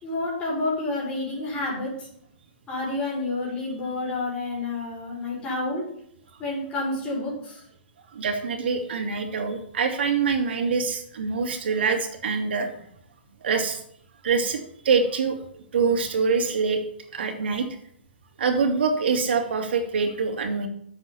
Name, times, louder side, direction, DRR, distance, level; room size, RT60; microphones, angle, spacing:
voice 1, 0.0-2.1 2.7-5.8 6.4-7.6, left 2 dB, 15° left, -4 dB, 6.2 m, -29 dB
voice 2, 8.1-12.7 13.4-13.8 14.2-16.8 17.1-17.7 18.4-20.7, right 5 dB, 70° right, 4 dB, 2.9 m, -25 dB
10.5 x 7.8 x 7.1 m, 0.68 s
hypercardioid pair, 160°, 6 cm